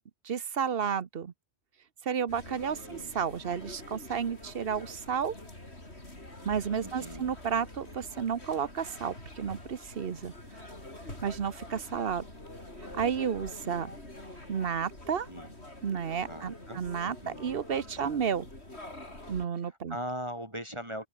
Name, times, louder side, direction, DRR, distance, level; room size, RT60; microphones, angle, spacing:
voice 1, 0.2-1.3 2.0-5.3 6.4-10.3 11.2-12.2 13.0-13.9 14.5-15.3 15.8-18.5 19.3-20.0, right 7 dB, 60° right, 1.2 m, -32 dB
sound 1, 2.3-19.5, left 1 dB, 80° left, 7.0 m, -46 dB
voice 2, 2.7-3.1 6.8-7.3 15.3-15.5 16.3-17.6 18.0-18.2 19.7-21.1, equal, 25° right, 4.7 m, -41 dB
omnidirectional pair, 1.1 m